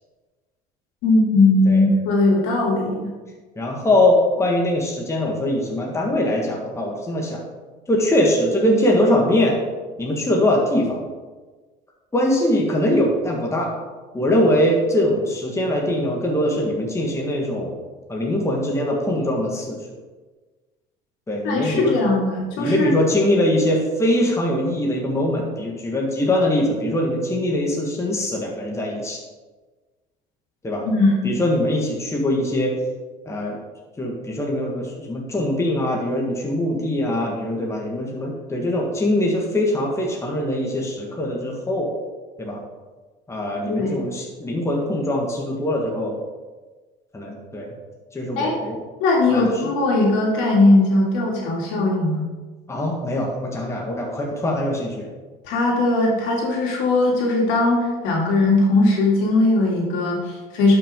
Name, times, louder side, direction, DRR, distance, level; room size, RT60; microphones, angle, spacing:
voice 1, 1.0-3.1 21.4-22.9 30.8-31.3 43.7-44.0 48.4-48.5 49.0-52.3 55.4-60.8, left 2 dB, 75° left, -2 dB, 2.8 m, -19 dB
voice 2, 3.6-7.4 7.9-9.6 10.0-11.0 12.1-13.7 14.1-17.7 18.1-19.8 21.3-22.0 22.6-29.2 30.6-30.8 31.2-32.8 33.3-33.6 34.0-41.9 42.4-42.6 43.3-46.2 47.1-47.7 48.1-48.8 49.3-49.5 52.7-55.1, left 1 dB, 15° left, -1 dB, 1.6 m, -22 dB
11.0 x 6.0 x 3.8 m, 1.3 s
supercardioid pair, 115°, 20 cm